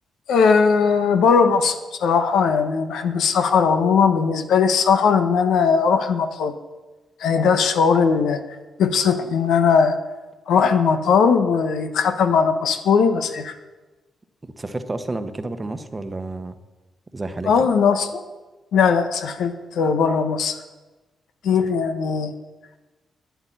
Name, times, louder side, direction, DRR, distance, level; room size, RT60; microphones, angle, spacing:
voice 1, 0.3-6.5 7.2-8.4 8.8-10.0 10.5-13.5 17.5-18.2 18.7-20.6 21.4-22.3, left 6 dB, 85° left, 7 dB, 1.1 m, -19 dB
voice 2, 14.4-16.6 17.1-17.5, right 2 dB, 20° right, 9 dB, 1.0 m, -30 dB
10.5 x 8.2 x 9.2 m, 1.2 s
cardioid pair, 105°, 0 cm